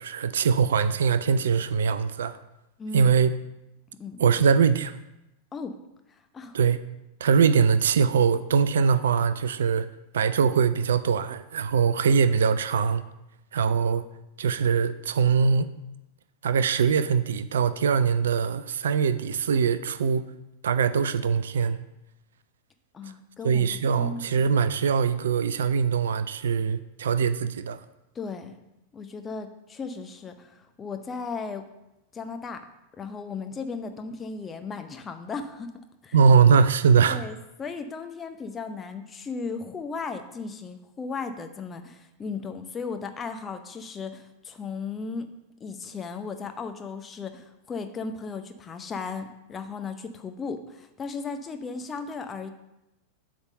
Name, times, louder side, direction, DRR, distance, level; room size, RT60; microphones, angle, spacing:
voice 1, 0.0-2.4 2.9-3.3 4.2-5.0 6.5-6.8 7.2-9.9 10.1-13.0 13.5-14.0 14.4-15.7 16.4-20.2 20.6-21.8 23.4-27.8 36.1-37.2, right 6 dB, 65° right, 13 dB, 0.4 m, -22 dB
voice 2, 2.8-3.1 4.0-4.2 5.5-5.8 6.1-6.6 22.9-24.5 28.1-28.6 28.9-31.7 32.1-32.6 33.0-35.7 36.0-36.2 37.1-45.3 45.6-52.5, left 4 dB, 20° left, 6 dB, 0.7 m, -36 dB
8.1 x 3.5 x 6.5 m, 0.92 s
figure-of-eight pair, 90°, 0 cm